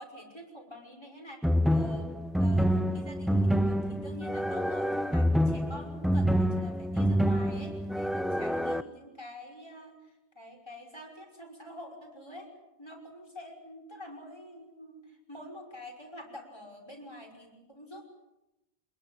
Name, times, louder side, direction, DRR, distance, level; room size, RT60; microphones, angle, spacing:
voice 1, 0.0-2.1 2.4-12.5 12.8-18.0, left 1 dB, 25° left, 3 dB, 5.8 m, -47 dB
sound 1, 1.4-8.8, equal, ahead, 0.8 m, -27 dB
26.0 x 22.0 x 8.0 m, 0.94 s
omnidirectional pair, 1.1 m